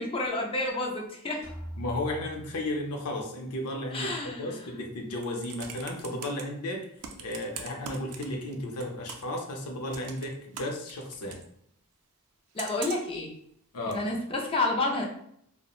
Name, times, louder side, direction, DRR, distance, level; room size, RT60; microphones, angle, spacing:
voice 1, 0.0-1.4 3.9-4.7 12.5-13.3 13.9-15.0, left 2 dB, 25° left, 0 dB, 0.4 m, -30 dB
sound 1, 1.4-3.3, right 1 dB, 20° right, 0.9 m, -43 dB
voice 2, 1.8-4.1 4.4-6.9 7.2-11.4 13.7-14.0, left 1 dB, 85° left, 1 dB, 0.5 m, -34 dB
Computer keyboard, 5.0-6.4 7.0-8.5 8.8-9.4 9.9-11.4 12.6-13.2 13.9-14.0, right 6 dB, 80° right, 0.4 m, -41 dB
2.8 x 2.0 x 2.3 m, 0.70 s
head